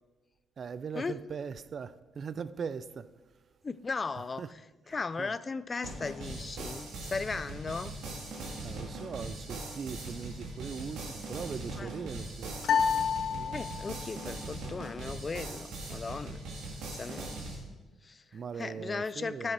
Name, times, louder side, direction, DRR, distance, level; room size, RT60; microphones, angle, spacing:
voice 1, 0.6-3.1 4.4-4.5 5.2-5.3 8.6-12.7 13.3-13.6 18.3-19.5, right 6 dB, 50° right, 0.4 m, -40 dB
voice 2, 3.6-4.6 4.9-7.9 11.8-12.1 13.5-16.4 16.9-17.3 18.0-19.5, left 4 dB, 30° left, 0.4 m, -37 dB
sound 1, 5.8-17.5, right 2 dB, 85° right, 2.3 m, -40 dB
sound 2, 12.6-14.1, left 7 dB, 75° left, 0.6 m, -29 dB
10.0 x 7.7 x 4.7 m
cardioid pair, 90°, 0 cm